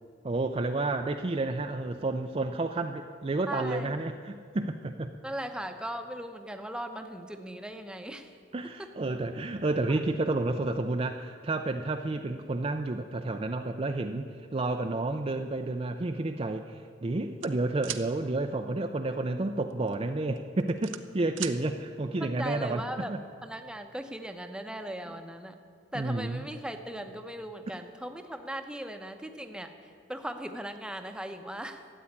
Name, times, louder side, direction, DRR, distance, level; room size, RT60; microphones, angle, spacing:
voice 1, 0.2-5.1 8.5-23.2 25.9-26.5, right 2 dB, 30° right, 6 dB, 0.5 m, -31 dB
voice 2, 3.5-3.9 5.2-8.3 8.6-8.9 22.2-23.1 23.4-25.6 25.9-29.7 30.1-31.8, right 1 dB, 5° right, 6 dB, 0.8 m, -38 dB
sound 1, 17.4-18.1 19.7-19.9 20.4-21.6, right 12 dB, 85° right, 0.7 m, -37 dB
13.0 x 8.5 x 9.8 m, 2.2 s
head